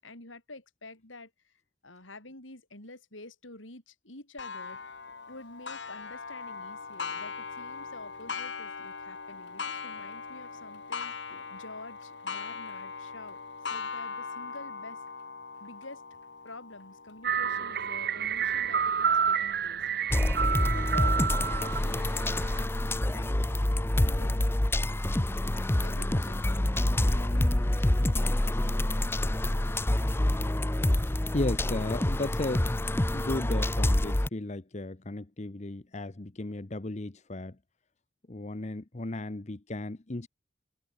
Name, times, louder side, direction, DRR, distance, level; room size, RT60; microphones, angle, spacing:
voice 1, 0.0-1.5 1.8-4.8 5.3-13.4 13.7-15.0 15.6-16.0 16.4-19.8 20.1-22.0 22.2-22.5 23.1-24.5 25.8-28.9, left 2 dB, 85° left, 7.6 m, -48 dB
Clock, 4.4-19.7 20.3-20.4 20.9-21.0 22.0-22.1, left 5 dB, 65° left, 1.9 m, -40 dB
sound 1, 17.2-22.6, right 7 dB, 55° right, 1.4 m, -29 dB
sound 2, 20.1-34.3, left 1 dB, 10° left, 0.6 m, -27 dB
voice 2, 31.3-32.7 33.1-37.6 38.3-40.3, left 2 dB, 35° left, 0.9 m, -35 dB
head